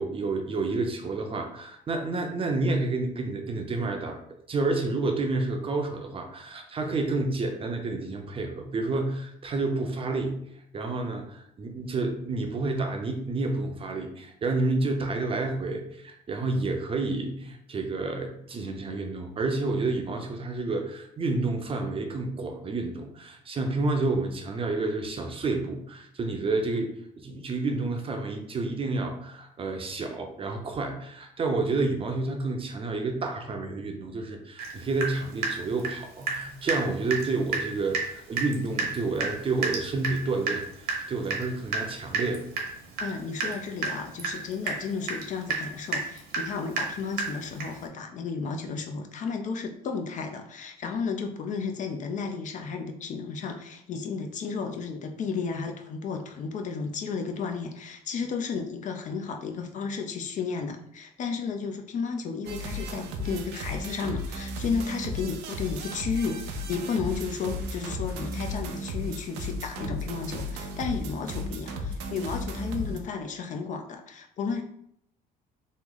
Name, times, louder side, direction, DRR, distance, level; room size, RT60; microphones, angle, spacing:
voice 1, 0.0-4.2 4.5-10.3 10.7-26.9 27.2-40.6 41.1-42.5, right 3 dB, 35° right, 3 dB, 0.5 m, -29 dB
Water tap faucet / Drip, 34.6-34.7 35.0-36.4 36.7-36.8 37.1-37.3 37.5-37.7 37.9-38.1 38.4-47.8, right 4 dB, 65° right, 0.8 m, -31 dB
voice 2, 43.0-74.6, left 5 dB, 50° left, 5 dB, 0.4 m, -33 dB
sound 1, 62.4-73.0, equal, 85° right, 0.5 m, -35 dB
3.1 x 2.0 x 3.6 m, 0.71 s
cardioid pair, 110°, 17 cm